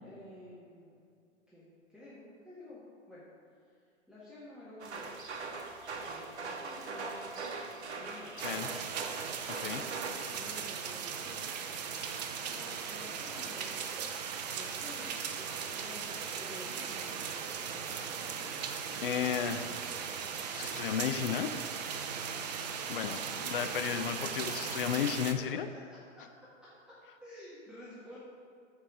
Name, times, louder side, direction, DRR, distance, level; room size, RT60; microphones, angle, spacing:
voice 1, 0.0-0.9 1.5-2.8 3.1-3.2 3.6-3.7 4.1-5.2 5.9-7.4 8.0-8.5 9.8-11.5 12.5-17.7 25.3-25.6 25.9-26.2 26.6-28.2, left 1 dB, ahead, -10 dB, 1.5 m, -51 dB
sound 1, 4.8-10.1, right 4 dB, 60° right, 1.1 m, -41 dB
sound 2, 8.4-25.3, right 6 dB, 35° right, 0.6 m, -38 dB
voice 2, 9.5-9.8 19.0-19.7 20.5-21.6 22.9-25.7, left 9 dB, 45° left, 9 dB, 0.5 m, -33 dB
12.5 x 4.7 x 3.7 m, 2.4 s
figure-of-eight pair, 115°, 38 cm